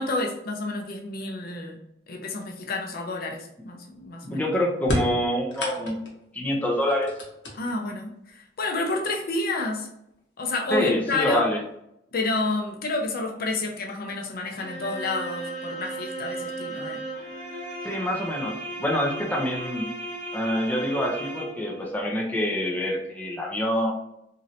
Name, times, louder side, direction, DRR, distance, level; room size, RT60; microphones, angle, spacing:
voice 1, 0.0-1.8 2.1-4.4 7.5-9.9 10.4-11.4 12.1-17.0, left 2 dB, 55° left, 2 dB, 0.5 m, -29 dB
voice 2, 4.2-6.0 6.3-7.1 10.7-11.6 17.8-18.5 18.8-19.9 20.3-23.9, left 1 dB, 10° left, -2 dB, 0.5 m, -26 dB
sound 1, 4.8-6.2 6.8-8.0 9.0-9.1 10.1-10.2 10.7-11.2, left 1 dB, 75° left, 0.9 m, -31 dB
sound 2, 14.6-21.8, right 1 dB, 50° right, 1.3 m, -35 dB
3.1 x 2.6 x 2.7 m, 0.79 s
head